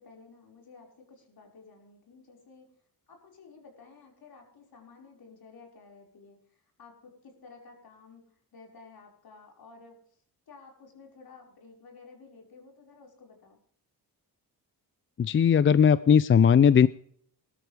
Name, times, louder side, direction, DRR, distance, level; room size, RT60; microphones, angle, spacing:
voice 1, 0.0-2.7 3.1-10.0 10.5-13.6, left 4 dB, 65° left, 0 dB, 5.2 m, -53 dB
voice 2, 15.2-16.9, left 7 dB, 30° left, 16 dB, 0.4 m, -19 dB
20.5 x 12.5 x 3.4 m, 0.63 s
cardioid pair, 100°, 39 cm